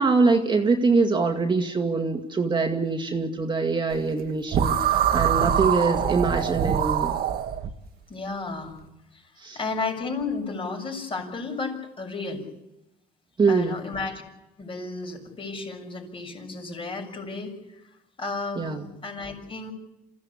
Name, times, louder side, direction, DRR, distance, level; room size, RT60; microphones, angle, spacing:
voice 1, 0.0-7.1 9.4-9.6 13.4-13.8 18.6-18.9, right 4 dB, 25° right, 3 dB, 2.2 m, -23 dB
sound 1, 4.5-7.7, right 9 dB, 65° right, 1.7 m, -24 dB
voice 2, 8.1-8.7 9.1-12.4 13.5-14.2 14.6-17.5 18.2-19.7, left 3 dB, 30° left, 3 dB, 6.6 m, -33 dB
27.5 x 16.0 x 8.5 m, 0.92 s
cardioid pair, 110°, 17 cm